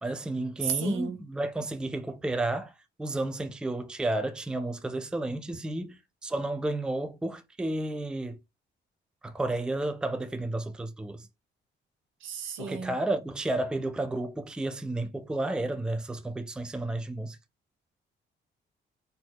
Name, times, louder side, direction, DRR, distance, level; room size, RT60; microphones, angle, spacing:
voice 1, 0.0-2.7 3.0-8.4 9.2-11.3 12.6-17.4, right 2 dB, 5° right, 0.4 m, -32 dB
voice 2, 0.6-1.2 12.2-13.0, right 7 dB, 75° right, 1.0 m, -33 dB
4.3 x 2.7 x 2.3 m
cardioid pair, 90°, 20 cm